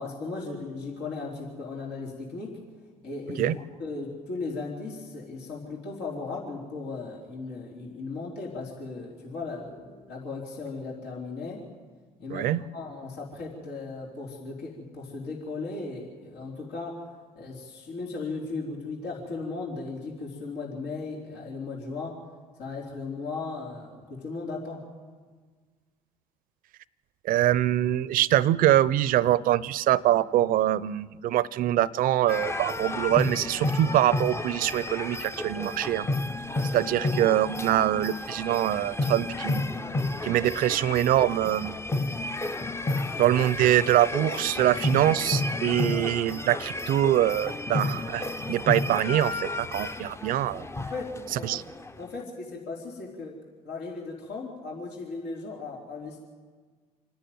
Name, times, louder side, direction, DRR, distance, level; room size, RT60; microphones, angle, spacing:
voice 1, 0.0-2.6 3.0-11.6 12.2-12.5 12.7-17.0 17.3-22.1 22.6-24.8 37.0-37.2 50.9-51.6 52.0-53.4 53.6-56.2, left 3 dB, 75° left, -3 dB, 3.9 m, -36 dB
voice 2, 12.3-12.6 27.2-36.1 36.7-39.7 40.2-41.8 43.2-50.7 51.4-51.6, right 13 dB, 60° right, 20 dB, 0.6 m, -24 dB
sound 1, 32.3-52.0, left 2 dB, 15° left, 0.8 m, -31 dB
27.5 x 10.5 x 9.5 m, 1.5 s
hypercardioid pair, 65°, 16 cm